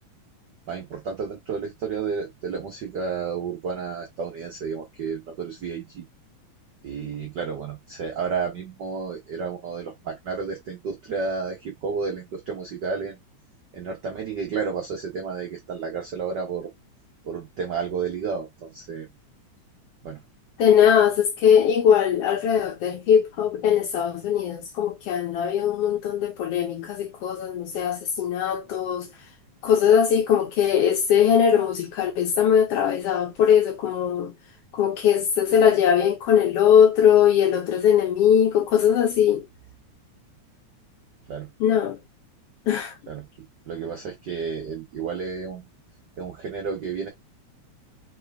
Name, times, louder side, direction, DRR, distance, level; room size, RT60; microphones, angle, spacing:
voice 1, 0.7-6.0 6.8-13.2 13.7-16.7 17.2-19.1 20.0-20.2 41.3-41.5 43.1-43.2 43.7-45.6 46.2-47.1, right 5 dB, 90° right, 0.9 m, -31 dB
voice 2, 20.6-29.1 29.6-34.3 34.7-39.5 41.6-42.0 42.7-43.0, left 8 dB, 70° left, 1.5 m, -20 dB
4.3 x 3.4 x 3.5 m
omnidirectional pair, 3.4 m